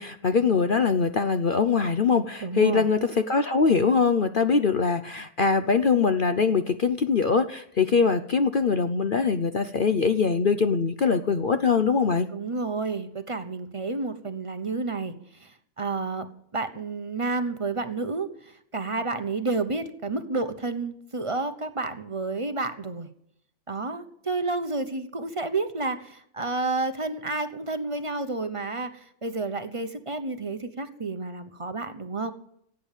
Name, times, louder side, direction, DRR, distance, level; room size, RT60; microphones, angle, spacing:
voice 1, 0.0-12.3, left 5 dB, 50° left, 9 dB, 0.7 m, -23 dB
voice 2, 2.4-2.9 12.3-23.1 23.7-32.3, right 3 dB, 25° right, 9 dB, 1.0 m, -30 dB
16.5 x 8.9 x 7.4 m, 0.71 s
omnidirectional pair, 1.6 m